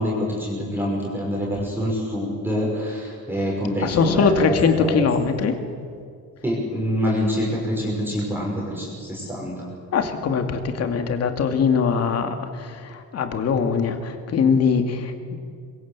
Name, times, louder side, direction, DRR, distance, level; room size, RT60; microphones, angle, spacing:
voice 1, 0.0-4.5 4.8-5.1 6.4-9.6, equal, 5° right, -4 dB, 5.9 m, -26 dB
voice 2, 3.8-5.6 9.9-15.4, left 5 dB, 45° left, 6 dB, 2.4 m, -22 dB
25.0 x 22.5 x 8.4 m, 2.2 s
cardioid pair, 155°, 35 cm